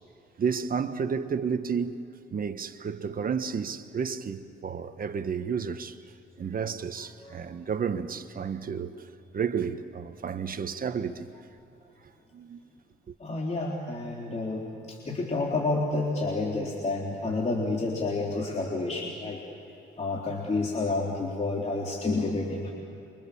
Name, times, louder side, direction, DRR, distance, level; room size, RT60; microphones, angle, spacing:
voice 1, 0.4-2.1 2.3-6.0 6.4-8.9 9.3-11.3 12.3-12.6, right 6 dB, 45° right, 1.4 m, -31 dB
voice 2, 13.2-14.6 14.9-19.4 20.0-22.7, left 3 dB, 35° left, 3.8 m, -29 dB
29.0 x 25.5 x 7.2 m
cardioid pair, 90°, 20 cm